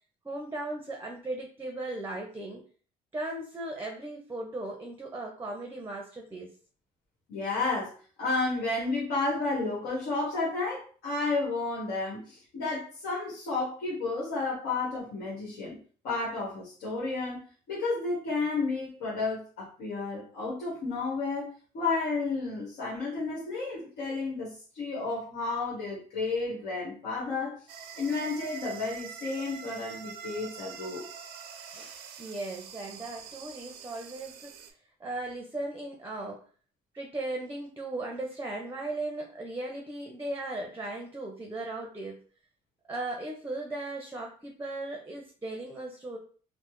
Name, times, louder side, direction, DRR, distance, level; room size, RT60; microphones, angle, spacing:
voice 1, 0.2-2.6 3.1-6.5 31.7-34.6 35.0-36.4 36.9-42.2 42.9-46.2, right 2 dB, 15° right, 1 dB, 0.5 m, -37 dB
voice 2, 7.3-7.9 8.2-15.8 16.0-27.6 28.0-31.0, left 3 dB, 85° left, -5 dB, 1.2 m, -32 dB
sound 1, 27.7-34.7, right 7 dB, 75° right, 0.5 m, -45 dB
3.2 x 2.0 x 3.1 m, 0.41 s
cardioid pair, 110°, 17 cm